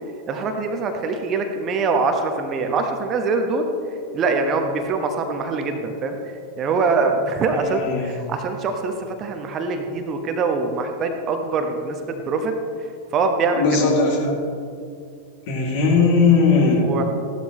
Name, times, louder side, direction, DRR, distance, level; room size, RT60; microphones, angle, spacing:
voice 1, 0.3-3.6 4.1-12.5 13.1-13.6 16.8-17.0, right 4 dB, 30° right, 5 dB, 1.1 m, -23 dB
voice 2, 7.5-8.1 13.5-14.3 15.5-16.9, left 4 dB, 50° left, -2 dB, 2.8 m, -18 dB
15.5 x 12.0 x 3.2 m, 2.3 s
figure-of-eight pair, 90°, 0 cm